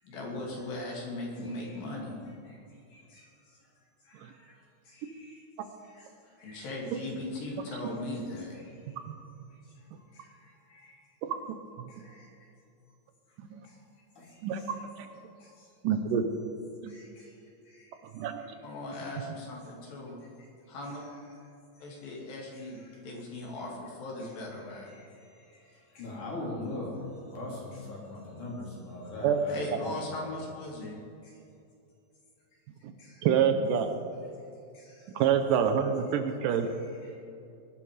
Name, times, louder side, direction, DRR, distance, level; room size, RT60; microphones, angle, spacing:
voice 1, 0.0-2.2 6.4-8.5 18.6-20.2 20.7-21.1 21.8-24.9 29.5-31.0, left 2 dB, 75° left, -3 dB, 4.5 m, -38 dB
voice 2, 2.9-3.3 4.1-4.5 4.9-5.4 5.9-6.0 6.4-6.7 10.2-10.9 11.9-12.3 14.2-14.3 15.4-15.5 16.9-17.3 17.7-17.9 25.9-27.0 27.3-30.2 33.0-33.2 34.7-35.0, left 2 dB, 60° left, -4 dB, 4.8 m, -42 dB
voice 3, 11.5-11.9 13.5-13.6 14.4-14.6 15.0-15.1 15.8-16.2 16.8-16.9 18.1-18.5 29.2-29.4 32.8-32.9 33.2-33.9 35.2-36.7, right 8 dB, 75° right, 7 dB, 2.3 m, -27 dB
20.0 x 11.5 x 5.0 m, 2.6 s
omnidirectional pair, 4.1 m